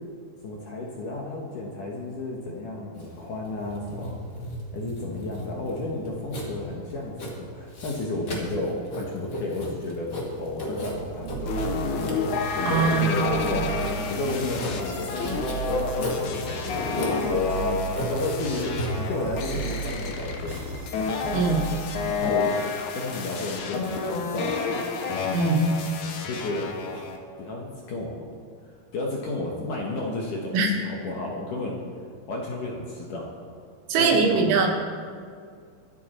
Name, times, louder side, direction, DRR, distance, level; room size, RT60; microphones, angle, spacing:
voice 1, 0.4-4.2 4.7-10.1 10.4-11.7 12.6-13.7 14.1-15.4 15.6-17.8 18.1-18.7 19.1-20.6 22.1-22.6 22.9-24.5 26.2-26.7 26.9-27.1 27.4-28.3 28.9-31.8 32.3-33.3 34.0-34.4, left 2 dB, 65° left, -2 dB, 2.3 m, -32 dB
Writing, 3.0-22.1, equal, 45° left, 1.4 m, -36 dB
sound 1, 10.9-21.8, right 6 dB, 65° right, 2.8 m, -36 dB
sound 2, 11.5-27.2, left 4 dB, 80° left, 1.7 m, -30 dB
voice 2, 12.6-13.2 21.3-21.7 25.3-25.7 30.5-30.7 33.9-34.7, right 4 dB, 90° right, 1 dB, 4.0 m, -21 dB
24.0 x 8.4 x 4.4 m, 2.1 s
omnidirectional pair, 5.2 m